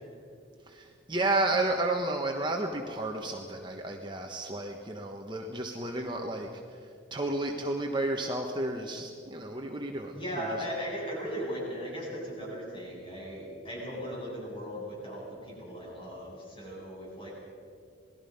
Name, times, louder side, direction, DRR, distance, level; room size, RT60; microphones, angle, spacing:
voice 1, 0.7-6.8 7.1-10.6, right 2 dB, 25° right, 2 dB, 1.4 m, -32 dB
voice 2, 10.1-17.4, equal, 25° left, -4 dB, 7.9 m, -37 dB
27.5 x 19.5 x 5.5 m, 2.4 s
head